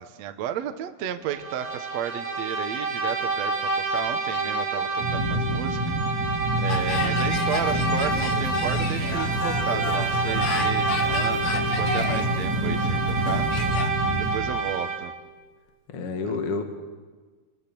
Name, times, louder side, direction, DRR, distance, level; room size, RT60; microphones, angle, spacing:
voice 1, 0.0-5.8 6.1-6.3 6.6-13.5 14.2-15.1 16.2-16.3, right 10 dB, 70° right, 8 dB, 1.7 m, -33 dB
Bowed string instrument, 1.3-15.2, right 4 dB, 20° right, 4.0 m, -28 dB
sound 1, 5.0-14.3, equal, 50° right, 3.7 m, -28 dB
sound 2, 6.7-13.9, left 5 dB, 75° left, 1.3 m, -32 dB
voice 2, 14.0-14.3 15.9-16.6, left 4 dB, 45° left, 4 dB, 2.3 m, -30 dB
28.5 x 20.0 x 6.9 m, 1.4 s
omnidirectional pair, 4.5 m